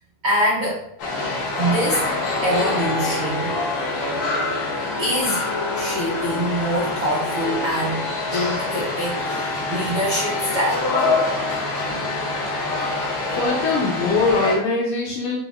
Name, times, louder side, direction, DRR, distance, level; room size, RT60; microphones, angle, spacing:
voice 1, 0.2-0.8 1.6-2.1 2.4-3.5 4.0-4.2 5.0-5.4 5.7-8.0 8.3-11.2 11.8-12.0 12.8-12.9 13.3-13.4, equal, 70° right, -7 dB, 1.1 m, -24 dB
sound 1, 1.0-14.6, left 2 dB, 60° left, 2.0 m, -25 dB
voice 2, 13.3-15.4, left 3 dB, 75° left, -3 dB, 2.1 m, -22 dB
6.9 x 3.5 x 2.2 m, 0.72 s
omnidirectional pair, 4.6 m